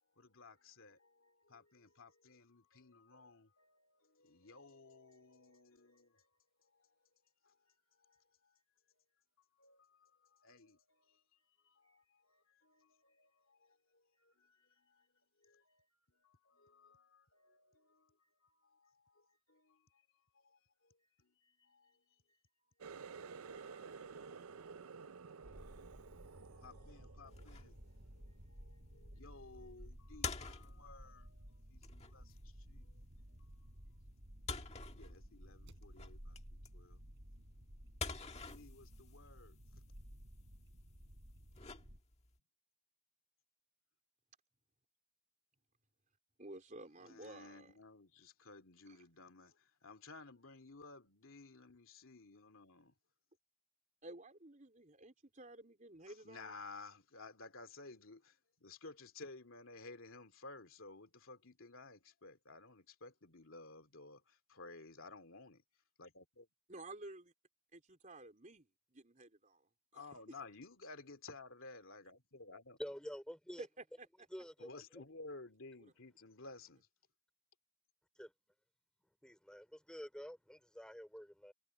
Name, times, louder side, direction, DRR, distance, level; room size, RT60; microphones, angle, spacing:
voice 1, 0.2-6.2 7.5-7.6 8.1-8.2 9.6-10.1 10.4-11.2 11.6-13.7 14.2-15.1 15.4-15.9 16.2-18.1 18.7-19.8 20.4-20.6 21.2-22.0 22.9-25.1 25.5-25.8 26.3-27.8 28.1-32.3 32.7-32.9 33.3-33.4 34.9-37.0 38.4-39.5 47.0-52.9 56.2-58.3 58.6-65.6 66.0-66.5 69.9-72.8 74.6-76.9, left 3 dB, 60° left, 2.7 m, -56 dB
Water tap faucet, 22.8-28.3 28.7-29.1 29.6-29.9 30.6-30.7, right 5 dB, 75° right, 0.5 m, -53 dB
sound 1, 25.4-42.0, equal, 55° right, 6.1 m, -56 dB
sound 2, 27.3-42.4, left 4 dB, 30° left, 1.7 m, -50 dB
voice 2, 46.4-47.8 48.8-49.0 54.0-56.6 66.7-67.3 67.7-70.4 73.6-74.3 75.8-75.9, right 2 dB, 35° right, 4.1 m, -53 dB
voice 3, 72.8-73.7 74.3-75.0 78.2-78.3 79.2-81.5, equal, 5° left, 3.7 m, -49 dB
head